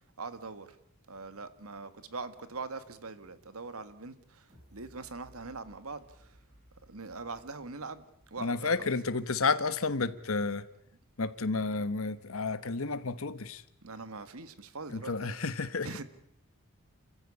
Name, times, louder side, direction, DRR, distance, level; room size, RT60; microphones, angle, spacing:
voice 1, 0.2-0.8 1.1-6.4 6.9-8.9 13.8-15.4 15.8-16.0, right 3 dB, 80° right, 1.7 m, -42 dB
sound 1, 4.5-9.4 9.8-9.9, equal, 30° right, 7.7 m, -61 dB
voice 2, 8.4-10.7 11.2-13.6 14.9-15.9, left 4 dB, 70° left, 1.2 m, -31 dB
28.0 x 15.0 x 9.9 m
head